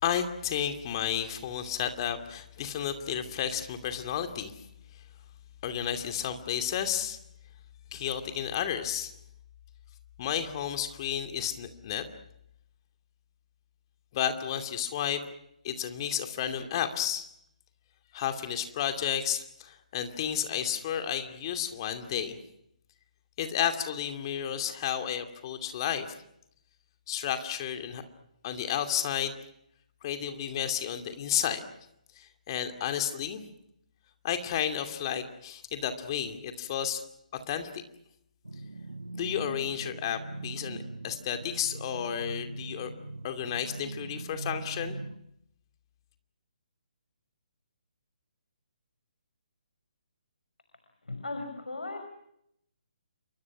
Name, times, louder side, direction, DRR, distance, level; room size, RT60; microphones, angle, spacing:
voice 1, 0.0-4.6 5.6-7.2 7.9-9.1 10.2-12.1 14.1-15.3 15.6-17.3 18.1-22.4 23.4-26.1 27.1-28.0 28.4-29.4 30.0-31.6 32.1-33.5 34.2-37.0 37.3-37.8 39.2-42.9 43.2-45.0, left 9 dB, 35° left, 7 dB, 2.5 m, -32 dB
sound 1, 38.5-45.2, right 2 dB, 85° right, 2.3 m, -41 dB
voice 2, 51.0-52.0, left 2 dB, 80° left, 5 dB, 5.7 m, -36 dB
28.5 x 25.0 x 6.1 m, 0.76 s
figure-of-eight pair, 140°, 4 cm